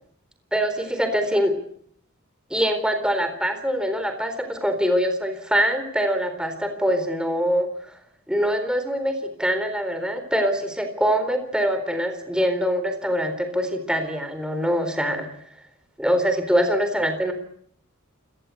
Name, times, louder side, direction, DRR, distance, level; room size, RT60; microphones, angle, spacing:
voice 1, 0.5-1.6 2.5-8.0 8.3-15.3 16.0-17.3, equal, 5° right, 7 dB, 4.1 m, -24 dB
28.0 x 19.0 x 8.5 m, 0.65 s
head